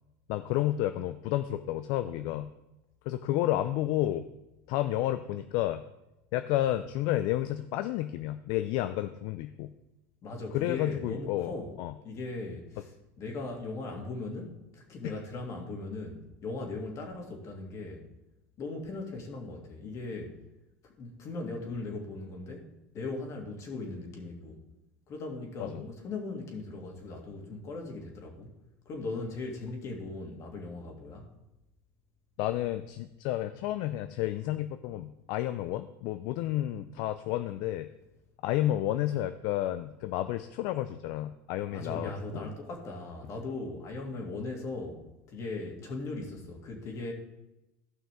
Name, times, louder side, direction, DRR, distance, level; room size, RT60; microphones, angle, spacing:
voice 1, 0.3-2.5 3.1-4.3 4.7-5.8 6.3-9.7 10.5-11.9 15.0-15.1 25.6-25.8 32.4-37.9 38.4-42.5, left 14 dB, 65° left, 11 dB, 0.5 m, -31 dB
voice 2, 10.2-11.7 12.0-12.9 13.2-18.0 18.6-20.3 20.8-22.7 22.9-24.6 25.1-28.5 28.8-31.3 41.7-45.0 45.3-47.1, left 3 dB, 45° left, 1 dB, 2.9 m, -38 dB
15.0 x 5.8 x 3.7 m, 0.95 s
supercardioid pair, 100°, 7 cm